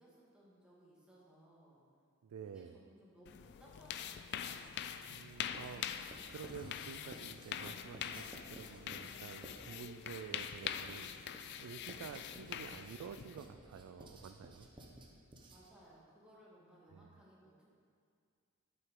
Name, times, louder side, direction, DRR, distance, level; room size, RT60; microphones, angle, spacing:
voice 1, 0.0-1.8 2.4-4.9 15.5-17.7, right 1 dB, 5° right, -7 dB, 1.7 m, -62 dB
voice 2, 2.2-2.8 5.1-14.7 16.9-17.1, right 7 dB, 80° right, 7 dB, 0.3 m, -50 dB
sound 1, 3.3-13.5, left 9 dB, 50° left, 0.3 m, -44 dB
Writing, 4.3-4.9 5.5-15.9, right 1 dB, 20° right, 0.8 m, -56 dB
9.4 x 7.7 x 3.7 m, 2.2 s
head